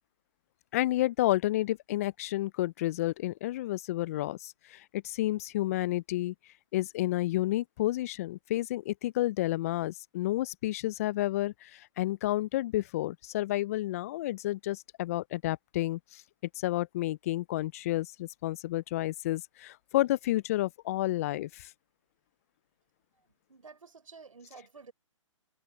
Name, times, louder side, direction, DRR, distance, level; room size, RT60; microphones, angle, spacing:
voice 1, 0.7-6.3 6.7-16.2 16.6-21.7, left 16 dB, 30° left, 0.4 m, -30 dB
voice 2, 23.1-24.9, right 4 dB, 80° right, 6.5 m, -52 dB
hypercardioid pair, 140°, 17 cm